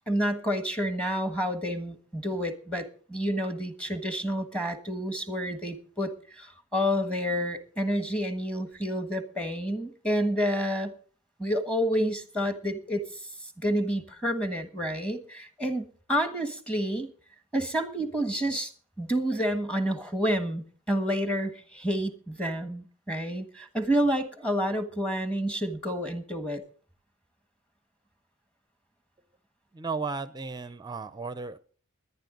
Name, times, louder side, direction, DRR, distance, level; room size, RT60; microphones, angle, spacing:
voice 1, 0.1-10.9 11.4-13.1 13.6-17.1 17.5-18.7 19.0-26.6, equal, 5° left, 7 dB, 1.4 m, -29 dB
voice 2, 29.7-31.6, right 4 dB, 20° right, 13 dB, 0.6 m, -34 dB
20.0 x 11.0 x 3.9 m, 0.43 s
head